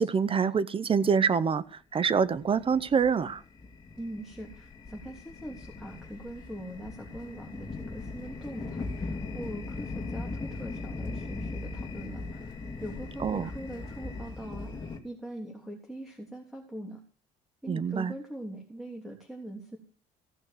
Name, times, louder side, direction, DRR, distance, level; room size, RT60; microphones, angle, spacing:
voice 1, 0.0-3.4 13.2-13.5 17.7-18.1, right 6 dB, 30° right, 0.8 m, -26 dB
sound 1, 2.2-15.0, left 3 dB, 25° left, 2.6 m, -39 dB
voice 2, 4.0-12.5 12.8-17.0 17.6-19.8, right 1 dB, ahead, 3.3 m, -42 dB
15.5 x 6.4 x 7.8 m
cardioid pair, 110°, 17 cm